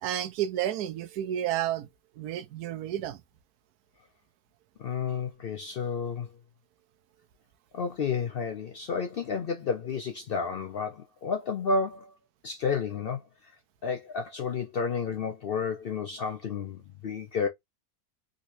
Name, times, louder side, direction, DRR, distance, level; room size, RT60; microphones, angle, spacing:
voice 1, 0.0-1.9 2.2-3.2, right 11 dB, 80° right, 1.2 m, -31 dB
voice 2, 4.8-6.3 7.7-12.1 12.4-13.3 13.8-17.5, left 5 dB, 75° left, 0.5 m, -31 dB
3.9 x 3.0 x 2.5 m
omnidirectional pair, 1.6 m